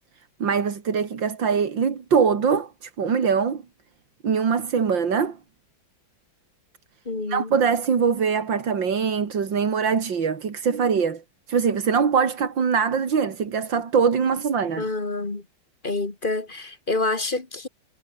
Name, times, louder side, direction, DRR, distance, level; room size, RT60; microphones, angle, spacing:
voice 1, 0.4-3.6 4.2-5.4 7.3-11.2 11.5-14.9, right 6 dB, 75° right, 3.0 m, -22 dB
voice 2, 7.1-7.5 14.8-15.4 15.8-17.7, left 3 dB, 25° left, 2.2 m, -27 dB
omnidirectional pair, 2.0 m